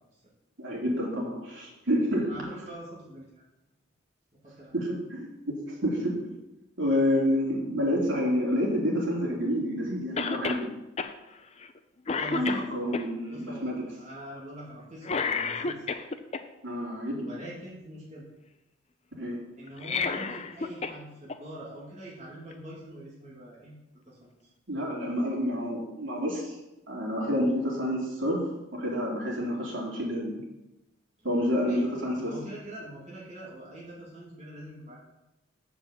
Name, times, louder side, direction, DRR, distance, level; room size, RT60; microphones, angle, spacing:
voice 1, 0.6-2.3 4.7-6.3 6.8-10.7 12.3-13.7 16.6-17.3 19.2-19.4 24.7-26.5 26.9-28.4 28.7-30.4 31.2-32.3, equal, 75° right, -3 dB, 3.4 m, -28 dB
voice 2, 2.3-3.3 4.4-4.7 12.1-12.6 13.3-15.8 17.2-18.3 19.6-23.7 24.1-24.2 31.6-31.8 32.2-35.0, right 1 dB, 35° right, -6 dB, 2.4 m, -43 dB
Cough, 10.2-10.7 11.0-11.1 11.6-11.8 12.1-13.0 15.0-16.4 19.7-21.0 21.3-21.4 22.5-22.6, left 4 dB, 35° left, 0.5 m, -30 dB
7.3 x 7.1 x 7.4 m, 0.95 s
head